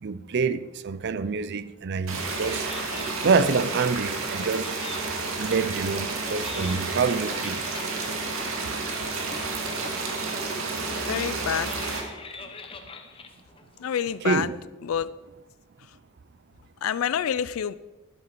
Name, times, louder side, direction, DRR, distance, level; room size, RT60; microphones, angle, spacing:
voice 1, 0.0-2.7 3.2-4.7 5.4-7.6 14.2-14.6, right 5 dB, 55° right, 0.5 m, -26 dB
sound 1, 2.1-12.0, right 3 dB, 75° right, 1.9 m, -31 dB
sound 2, 2.5-14.4, left 4 dB, 25° left, 0.9 m, -45 dB
voice 2, 11.1-11.7 13.8-14.5 14.8-15.1 16.8-17.8, left 8 dB, 70° left, 0.4 m, -27 dB
11.5 x 10.5 x 4.5 m
head